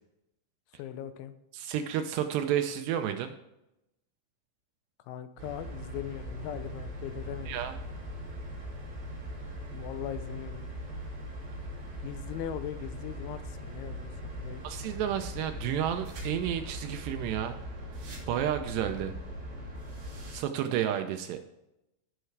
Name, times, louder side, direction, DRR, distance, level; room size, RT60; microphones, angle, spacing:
voice 1, 0.7-1.3 5.1-7.6 9.7-10.6 10.9-11.1 12.0-14.1 14.4-14.6, left 11 dB, 85° left, 11 dB, 3.1 m, -40 dB
voice 2, 1.5-3.3 7.5-7.8 14.6-17.6 18.3-19.1 20.3-21.4, right 10 dB, 80° right, 7 dB, 2.6 m, -31 dB
sound 1, 5.4-20.3, equal, 45° right, 3.3 m, -40 dB
16.5 x 6.8 x 3.3 m, 0.88 s
omnidirectional pair, 5.3 m